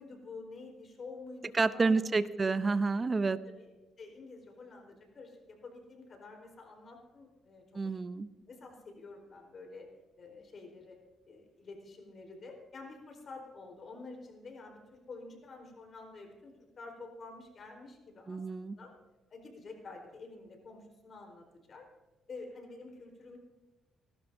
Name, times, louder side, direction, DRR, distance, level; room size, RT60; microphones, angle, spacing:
voice 1, 0.0-2.3 3.2-3.7 4.0-8.0 8.5-9.9 10.2-11.0 11.3-18.9 19.3-21.9 22.3-23.4, left 3 dB, 50° left, 2 dB, 4.2 m, -49 dB
voice 2, 1.6-3.4 7.7-8.3 18.3-18.8, right 4 dB, 30° right, 13 dB, 0.6 m, -29 dB
29.0 x 12.5 x 2.7 m, 1.2 s
cardioid pair, 90°, 0 cm